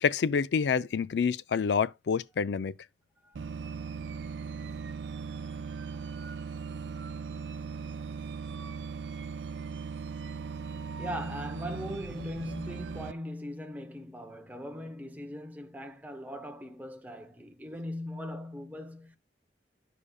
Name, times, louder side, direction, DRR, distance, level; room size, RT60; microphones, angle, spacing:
voice 1, 0.0-2.7, left 6 dB, 75° left, 0.4 m, -27 dB
sound 1, 3.3-13.1, right 5 dB, 90° right, 0.5 m, -39 dB
voice 2, 5.1-5.4 5.9-6.2 11.0-19.2, equal, 10° right, 0.7 m, -40 dB
12.0 x 5.0 x 2.3 m
head